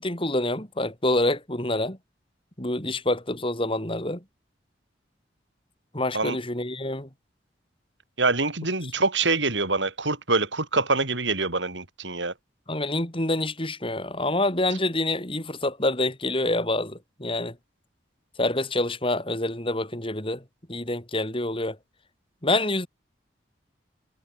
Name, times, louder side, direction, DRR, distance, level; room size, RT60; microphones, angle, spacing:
voice 1, 0.0-2.0 2.6-4.2 5.9-7.1 12.7-17.6 18.4-20.4 20.7-21.8 22.4-22.9, left 2 dB, 30° left, 5.2 m, -27 dB
voice 2, 8.2-12.3, right 3 dB, 85° right, 6.4 m, -25 dB
head